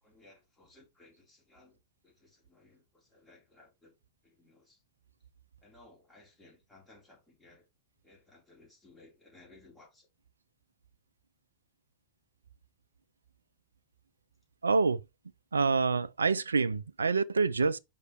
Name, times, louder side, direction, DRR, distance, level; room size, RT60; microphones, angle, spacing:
voice 1, 0.0-3.9 4.2-4.8 5.6-7.7 8.0-10.1, left 2 dB, 15° left, 3.8 m, -60 dB
voice 2, 14.6-15.0 15.5-17.8, right 4 dB, 75° right, 0.4 m, -27 dB
5.7 x 4.9 x 4.7 m
figure-of-eight pair, 90°, 0 cm